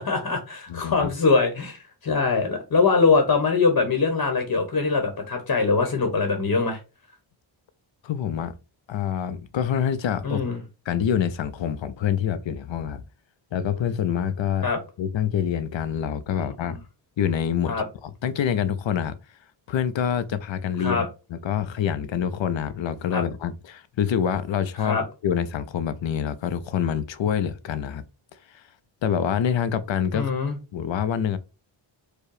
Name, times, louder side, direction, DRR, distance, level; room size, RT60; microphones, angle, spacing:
voice 1, 0.0-6.8 10.2-10.6 14.6-14.8 17.7-17.8 20.8-21.1 23.1-23.2 24.8-25.0 30.1-30.6, left 4 dB, 45° left, 1.1 m, -22 dB
voice 2, 0.7-1.1 8.0-8.6 8.9-10.4 10.9-13.0 13.5-14.7 15.0-16.8 17.2-17.7 18.0-19.2 19.7-25.0 25.2-28.0 28.5-28.6 29.0-30.3 30.7-31.4, left 8 dB, 70° left, 0.6 m, -26 dB
4.7 x 2.3 x 4.8 m
wide cardioid pair, 130°, 48 cm